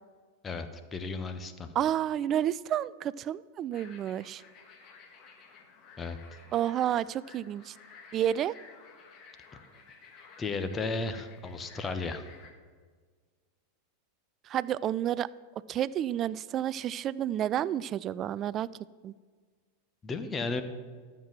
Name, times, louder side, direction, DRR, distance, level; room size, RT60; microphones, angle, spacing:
voice 1, 0.4-1.7 6.0-6.2 10.4-12.3 20.0-20.6, left 3 dB, 20° left, 9 dB, 1.0 m, -34 dB
voice 2, 1.8-4.4 6.5-7.7 8.1-8.5 14.5-15.3 15.7-18.7 19.0-19.1, right 11 dB, 30° right, 20 dB, 0.3 m, -30 dB
sound 1, 3.7-12.5, left 5 dB, 35° left, 1.5 m, -54 dB
13.0 x 7.5 x 6.0 m, 1.5 s
figure-of-eight pair, 90°, 0 cm